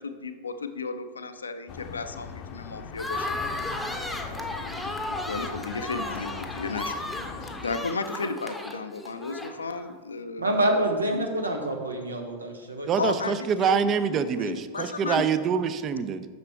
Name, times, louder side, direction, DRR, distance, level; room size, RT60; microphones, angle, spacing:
voice 1, 0.0-3.4 4.5-7.0 7.6-10.5 10.7-11.3 13.0-15.3, left 4 dB, 75° left, 9 dB, 0.5 m, -34 dB
sound 1, 1.7-7.7, left 5 dB, 40° left, 0.7 m, -40 dB
sound 2, 3.0-9.9, left 2 dB, 5° left, 0.8 m, -35 dB
voice 2, 10.4-12.9, right 1 dB, 80° right, 3 dB, 1.1 m, -27 dB
voice 3, 12.9-16.3, right 7 dB, 30° right, 12 dB, 0.5 m, -25 dB
9.4 x 6.6 x 3.3 m, 1.5 s
figure-of-eight pair, 90°, 0 cm